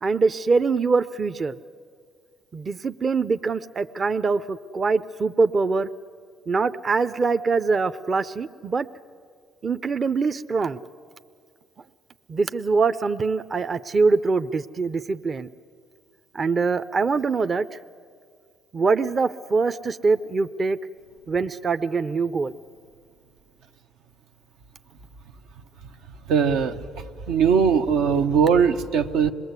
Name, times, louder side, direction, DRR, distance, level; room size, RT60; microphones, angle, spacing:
voice 1, 0.0-1.6 2.5-5.9 6.5-8.9 9.6-10.8 12.3-15.5 16.3-17.8 18.7-20.8 21.3-22.5, right 4 dB, 35° right, 11 dB, 0.6 m, -23 dB
voice 2, 26.3-29.3, right 6 dB, 90° right, 5 dB, 0.9 m, -20 dB
26.5 x 20.5 x 8.2 m, 2.1 s
cardioid pair, 90°, 0 cm